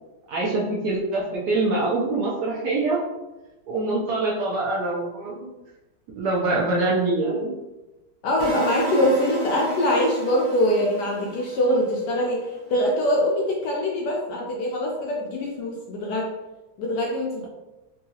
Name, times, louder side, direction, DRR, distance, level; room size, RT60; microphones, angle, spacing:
voice 1, 0.3-3.0 3.7-5.4 6.2-7.5, right 2 dB, 70° right, -4 dB, 1.0 m, -24 dB
voice 2, 8.2-16.3 16.8-17.5, left 1 dB, 75° left, -1 dB, 1.0 m, -23 dB
sound 1, 8.4-12.5, right 3 dB, 25° right, 0.8 m, -33 dB
3.7 x 2.3 x 2.7 m, 1.0 s
omnidirectional pair, 2.1 m